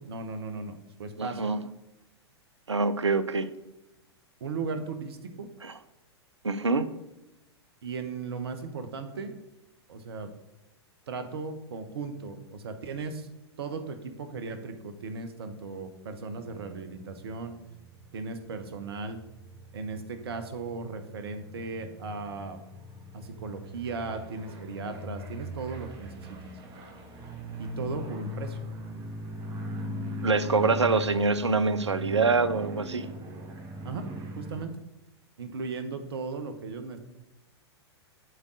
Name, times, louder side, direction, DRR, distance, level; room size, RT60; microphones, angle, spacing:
voice 1, 0.0-1.4 4.4-5.5 7.8-9.3 9.9-10.3 11.1-13.3 13.6-17.5 18.1-19.2 19.7-22.6 23.1-26.1 27.6-28.6 33.8-34.0 34.4-34.7 35.4-37.0, right 4 dB, 65° right, 8 dB, 1.0 m, -37 dB
voice 2, 1.2-1.6 2.7-3.5 5.6-5.7 6.4-6.9 30.2-33.1, right 4 dB, 85° right, 13 dB, 0.6 m, -25 dB
sound 1, 16.4-34.7, equal, 25° right, 1.3 m, -40 dB
7.8 x 3.7 x 6.3 m, 0.96 s
figure-of-eight pair, 100°, 14 cm